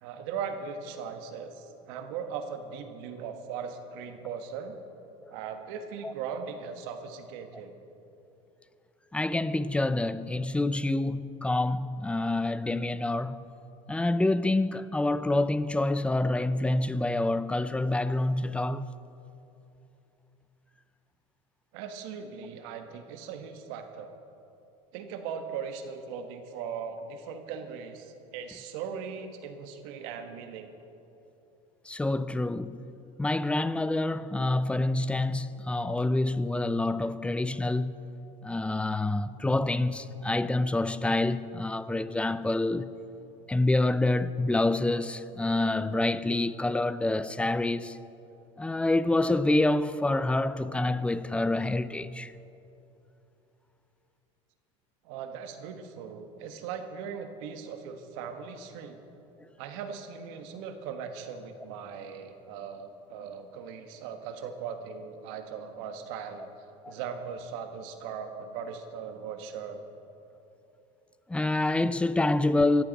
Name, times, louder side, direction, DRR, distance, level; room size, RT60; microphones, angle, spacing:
voice 1, 0.0-4.8 5.3-7.7 21.7-24.1 24.9-30.7 55.0-59.0 59.6-66.5 66.9-69.8, right 6 dB, 75° right, 1.4 m, -39 dB
voice 2, 9.1-13.5 13.9-18.9 31.9-32.8 33.2-38.0 38.4-43.0 43.5-48.0 48.6-52.3 66.8-66.9 71.3-72.8, left 2 dB, 5° left, 0.5 m, -27 dB
19.0 x 14.0 x 4.1 m
supercardioid pair, 100°, 17 cm